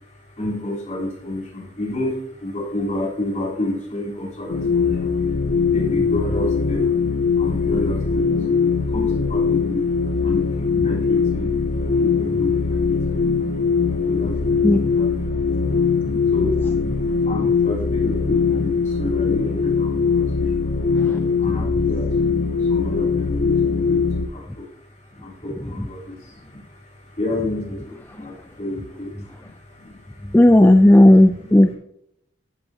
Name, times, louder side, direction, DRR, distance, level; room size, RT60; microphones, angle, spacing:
voice 1, 0.4-9.9 10.1-13.5 14.1-20.9 21.2-24.7 25.1-30.3 30.8-30.9 31.2-31.7, left 1 dB, 35° left, -5 dB, 3.7 m, -31 dB
sound 1, 4.5-24.3, left 5 dB, 55° left, 0.6 m, -21 dB
voice 2, 21.0-21.8 30.3-31.7, left 1 dB, 10° left, 7 dB, 0.3 m, -14 dB
14.5 x 8.1 x 2.8 m, 0.74 s
head